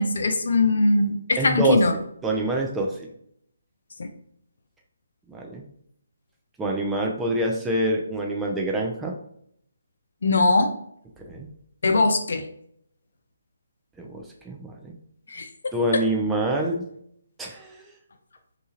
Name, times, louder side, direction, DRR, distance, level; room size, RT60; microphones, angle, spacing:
voice 1, 0.0-1.9 4.0-4.1 10.2-10.7 11.8-12.4 15.3-16.0, left 2 dB, 65° left, 7 dB, 0.4 m, -21 dB
voice 2, 1.4-2.9 5.3-5.6 6.6-9.1 11.3-11.5 14.0-14.9 15.7-16.8 17.4-17.8, right 1 dB, 10° right, -1 dB, 0.4 m, -26 dB
2.9 x 2.3 x 2.8 m, 0.70 s
figure-of-eight pair, 145°, 0 cm